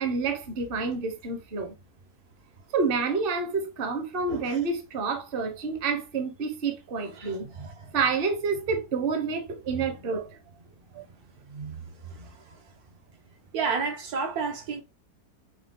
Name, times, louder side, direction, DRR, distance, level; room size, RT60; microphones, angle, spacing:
voice 1, 0.0-1.8 2.7-7.7 7.9-10.3 10.9-11.0 11.5-11.8 12.2-12.3, right 4 dB, 40° right, 0.9 m, -29 dB
voice 2, 13.5-14.8, right 5 dB, 70° right, 1.4 m, -29 dB
6.4 x 2.3 x 3.6 m
omnidirectional pair, 1.7 m